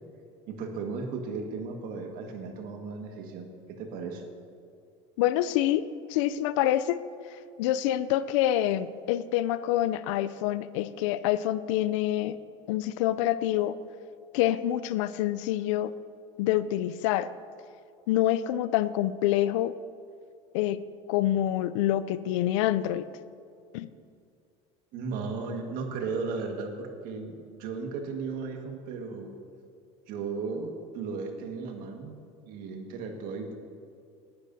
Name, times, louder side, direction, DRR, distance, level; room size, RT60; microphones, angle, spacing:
voice 1, 0.5-4.2 24.9-29.3 30.1-32.1 32.5-33.6, right 4 dB, 65° right, 4 dB, 1.7 m, -35 dB
voice 2, 5.2-5.8 6.1-7.0 7.6-12.4 12.7-13.8 14.3-15.9 16.4-17.3 18.1-19.7 20.5-20.8 21.1-23.1 23.7-23.9, left 13 dB, 80° left, 15 dB, 0.5 m, -26 dB
18.5 x 11.0 x 2.7 m, 2.4 s
supercardioid pair, 85°, 16 cm